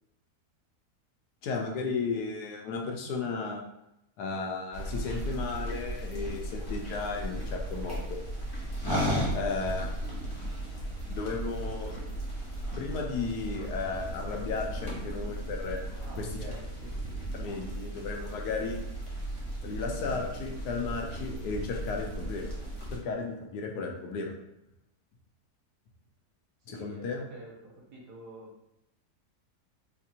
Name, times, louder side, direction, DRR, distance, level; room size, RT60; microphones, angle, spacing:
voice 1, 1.4-3.6 4.2-8.2 9.3-9.9 11.1-11.9 12.8-15.8 16.2-16.3 17.4-18.8 19.6-22.5 22.9-24.3 26.7-27.2, left 4 dB, 75° left, 1 dB, 1.2 m, -34 dB
sound 1, 4.7-23.0, right 1 dB, 20° left, 0.8 m, -35 dB
voice 2, 15.9-17.0 26.6-28.5, right 1 dB, 75° right, -3 dB, 1.5 m, -48 dB
4.3 x 2.5 x 2.8 m, 0.86 s
omnidirectional pair, 1.7 m